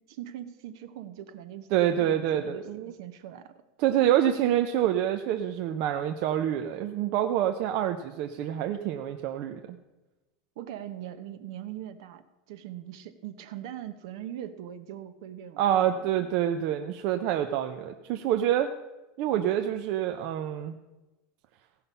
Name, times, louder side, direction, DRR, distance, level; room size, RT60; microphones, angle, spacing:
voice 1, 0.0-3.5 10.6-12.2 12.5-16.3, right 11 dB, 60° right, 11 dB, 0.9 m, -41 dB
voice 2, 1.7-2.9 3.8-9.8 15.6-18.7 19.2-20.7, right 11 dB, 40° right, 6 dB, 0.5 m, -27 dB
16.0 x 5.7 x 5.5 m, 1.1 s
supercardioid pair, 175°, 3 cm